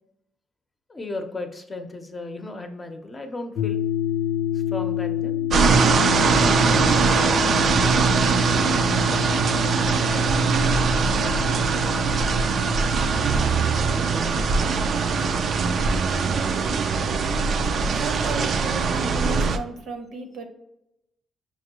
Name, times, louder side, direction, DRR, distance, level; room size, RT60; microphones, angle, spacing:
voice 1, 0.9-3.8 4.5-5.7 6.2-8.4 17.9-18.0, left 2 dB, 25° left, 5 dB, 0.6 m, -36 dB
sound 1, 3.6-19.4, left 11 dB, 70° left, 0.3 m, -30 dB
sound 2, 5.5-19.6, right 5 dB, 55° right, 0.3 m, -21 dB
voice 2, 16.5-16.8 17.9-20.4, right 2 dB, 75° right, 5 dB, 0.7 m, -34 dB
5.6 x 2.2 x 2.9 m, 0.86 s
cardioid pair, 90°, 0 cm